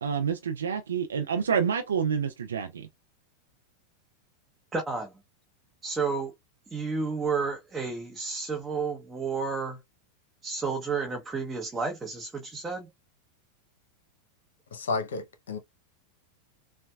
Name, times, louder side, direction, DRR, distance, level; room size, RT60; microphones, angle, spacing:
voice 1, 0.0-2.9, right 7 dB, 85° right, 0.4 m, -28 dB
voice 2, 4.7-5.2 5.8-6.3 6.7-9.8 10.4-12.9, right 4 dB, 20° right, 0.8 m, -31 dB
voice 3, 14.7-15.6, left 3 dB, 80° left, 0.6 m, -31 dB
4.1 x 2.1 x 2.3 m
hypercardioid pair, 100°, 0 cm